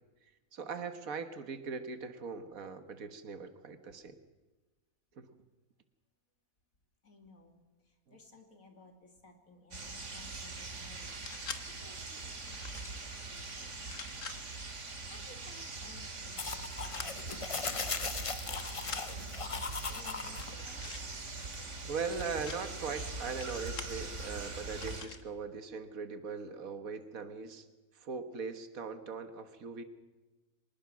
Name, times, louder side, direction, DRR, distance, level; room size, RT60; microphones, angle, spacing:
voice 1, 0.5-4.2 5.2-5.3 8.1-8.2 21.8-27.7 27.9-29.8, right 5 dB, 85° right, 9 dB, 1.8 m, -40 dB
voice 2, 7.0-11.1 11.4-14.3 15.1-21.1, left 2 dB, 85° left, 4 dB, 3.3 m, -58 dB
sound 1, 9.7-25.0, right 3 dB, 60° right, 2.6 m, -42 dB
sound 2, 11.0-11.6 12.4-13.0 13.8-14.4 16.8-17.1 17.8-18.1 18.4-19.0 20.3-21.0 22.0-22.6 23.4-24.0 24.7-25.2, left 6 dB, 70° left, 1.6 m, -45 dB
sound 3, 16.4-20.5, left 4 dB, 30° left, 0.7 m, -38 dB
24.0 x 20.0 x 6.2 m, 1.2 s
omnidirectional pair, 1.4 m